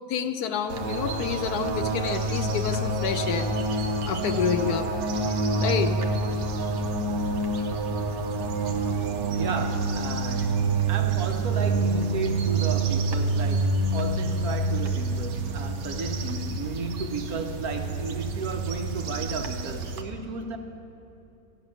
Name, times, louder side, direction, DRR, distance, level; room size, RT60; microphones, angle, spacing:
voice 1, 0.1-3.5 4.0-4.9 5.6-5.9, left 8 dB, 70° left, 9 dB, 1.1 m, -28 dB
sound 1, 0.7-20.0, right 3 dB, 80° right, 1.5 m, -27 dB
voice 2, 9.4-20.6, right 4 dB, 65° right, 5 dB, 1.4 m, -33 dB
15.0 x 6.7 x 9.9 m, 2.7 s
omnidirectional pair, 1.8 m